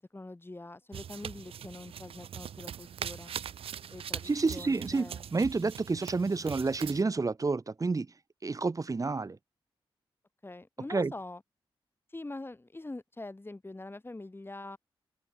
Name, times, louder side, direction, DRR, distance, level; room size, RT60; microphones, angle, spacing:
voice 1, 0.0-3.4 3.9-5.3 10.4-11.4 12.1-14.8, left 2 dB, 25° left, 6.9 m, -44 dB
sound 1, 0.9-7.0, right 9 dB, 90° right, 1.0 m, -42 dB
voice 2, 4.2-8.1 8.4-9.4 10.9-11.1, right 3 dB, 35° right, 1.6 m, -29 dB
cardioid pair, 70°, 9 cm